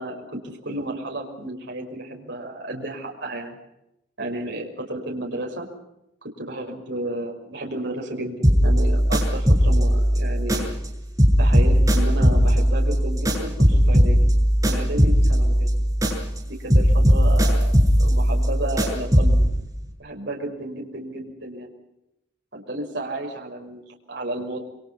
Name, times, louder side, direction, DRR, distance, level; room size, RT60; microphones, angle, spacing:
voice 1, 0.0-3.6 4.2-5.7 6.2-10.7 11.4-14.3 14.6-15.7 16.5-17.7 18.0-19.5 20.0-21.7 22.5-24.6, right 1 dB, 65° right, 1 dB, 5.8 m, -32 dB
sound 1, 8.4-10.9 11.2-16.4 16.7-19.5, equal, 20° right, 7.2 m, -18 dB
28.5 x 25.5 x 5.7 m, 0.85 s
head